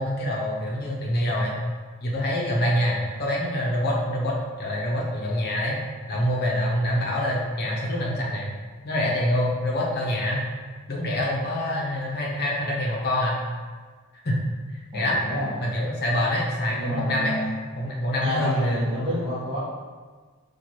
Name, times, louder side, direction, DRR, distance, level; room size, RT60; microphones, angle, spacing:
voice 1, 0.0-1.6 2.0-5.8 6.1-8.5 8.8-10.4 10.9-13.4 14.2-14.4 14.9-15.2 15.6-17.3 17.8-18.9, left 1 dB, 45° left, -3 dB, 0.9 m, -25 dB
voice 2, 14.9-15.5 16.7-17.5 18.2-19.6, equal, 20° right, -8 dB, 1.1 m, -29 dB
4.5 x 2.5 x 4.5 m, 1.4 s
head